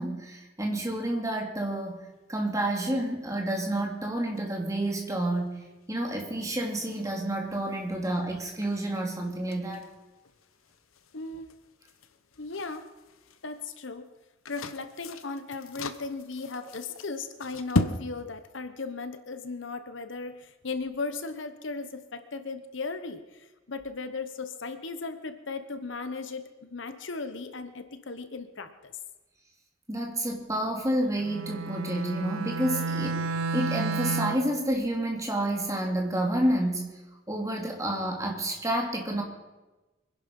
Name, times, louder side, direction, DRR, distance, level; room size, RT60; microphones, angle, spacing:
voice 1, 0.0-5.6 5.9-9.8 29.9-37.0 37.3-39.2, right 1 dB, 15° right, 1 dB, 2.8 m, -29 dB
sound 1, 1.6-18.0, left 2 dB, 90° left, 0.9 m, -39 dB
voice 2, 11.1-11.5 12.4-12.9 13.4-14.1 14.5-29.0, left 3 dB, 65° left, 10 dB, 1.1 m, -37 dB
Bowed string instrument, 31.2-34.6, right 3 dB, 85° right, 0.7 m, -31 dB
24.0 x 11.0 x 5.4 m, 1.1 s
head